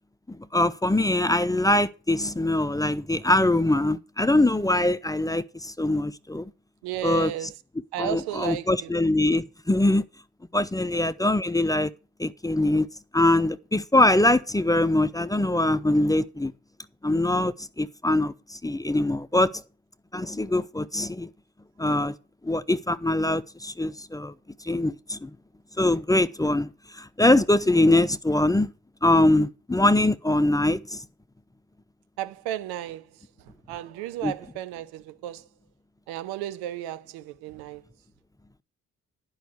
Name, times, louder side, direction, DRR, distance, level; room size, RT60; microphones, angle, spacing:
voice 1, 0.3-6.5 7.0-7.3 8.0-10.0 10.5-11.9 12.2-12.9 13.1-16.5 17.0-19.5 20.1-21.3 21.8-22.1 22.4-24.3 24.6-25.3 25.8-26.7 27.0-28.7 29.0-31.0 34.2-34.3, left 1 dB, 10° left, 0.7 m, -23 dB
voice 2, 6.8-7.5 7.9-8.9 10.9-11.0 32.2-33.0 33.7-35.5 36.1-37.8, right 12 dB, 70° right, 0.9 m, -33 dB
10.5 x 5.6 x 7.9 m
figure-of-eight pair, 40°, 40 cm